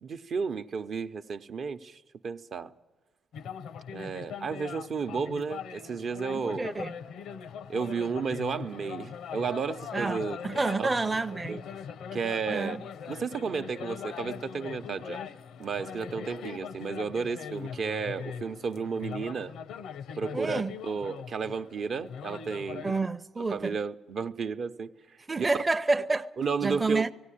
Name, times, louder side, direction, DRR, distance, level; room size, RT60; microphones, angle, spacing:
voice 1, 0.0-2.7 3.9-6.7 7.7-10.4 10.8-10.9 11.5-11.6 12.1-12.8 13.1-15.2 15.6-19.5 20.2-22.9 23.5-24.9 26.4-27.1, right 5 dB, 55° right, 0.8 m, -32 dB
sound 1, 3.3-23.0, left 7 dB, 80° left, 0.7 m, -41 dB
voice 2, 6.3-6.9 9.9-11.6 12.5-12.8 20.3-20.7 22.8-23.8 25.3-26.3 26.6-27.1, right 3 dB, 20° right, 0.6 m, -29 dB
17.5 x 17.0 x 10.0 m
cardioid pair, 90°, 0 cm